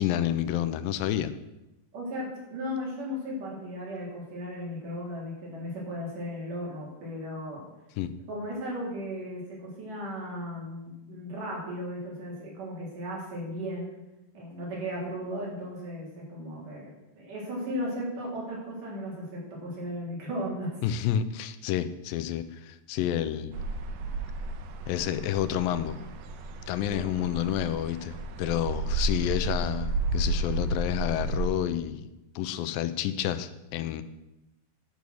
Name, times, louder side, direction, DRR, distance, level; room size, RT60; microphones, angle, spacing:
voice 1, 0.0-1.3 8.0-8.2 20.8-23.5 24.9-26.0 26.7-32.1 32.4-34.0, left 11 dB, 85° left, 12 dB, 2.3 m, -29 dB
voice 2, 1.9-7.6 8.3-13.9 14.3-20.7 26.9-27.1, equal, 65° right, -4 dB, 4.6 m, -36 dB
sound 1, 23.5-31.5, right 2 dB, 85° right, 2.7 m, -32 dB
9.4 x 6.9 x 6.3 m, 0.95 s
omnidirectional pair, 4.0 m